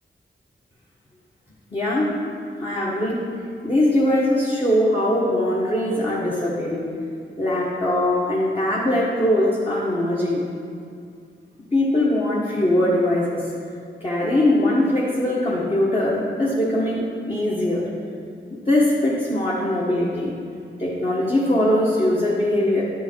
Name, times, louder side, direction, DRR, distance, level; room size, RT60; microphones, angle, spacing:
voice 1, 1.7-2.2 2.6-3.2 3.6-6.9 7.4-10.4 11.7-13.5 14.0-17.9 18.5-20.3 20.8-22.8, left 1 dB, 25° left, -7 dB, 1.4 m, -21 dB
9.5 x 5.5 x 4.6 m, 2.4 s
cardioid pair, 65°, 21 cm